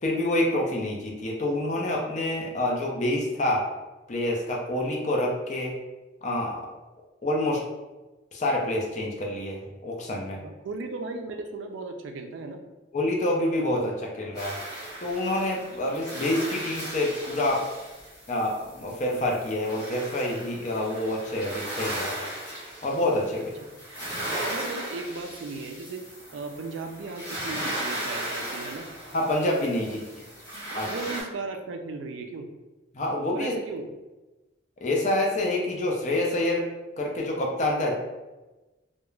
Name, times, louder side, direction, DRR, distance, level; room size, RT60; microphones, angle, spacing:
voice 1, 0.0-3.7 4.1-5.8 6.2-6.6 7.2-7.6 8.3-10.4 12.9-14.6 15.0-17.7 18.3-22.2 22.8-23.5 29.1-30.1 30.7-30.9 32.9-33.5 34.8-36.7 37.0-37.9, left 1 dB, 35° left, -1 dB, 0.4 m, -27 dB
voice 2, 10.3-12.6 24.4-26.0 26.3-28.9 30.8-32.5 33.3-33.9, right 3 dB, 75° right, 5 dB, 0.3 m, -36 dB
sound 1, 14.3-31.2, right 1 dB, 20° left, 0.8 m, -37 dB
2.3 x 2.1 x 3.0 m, 1.1 s
head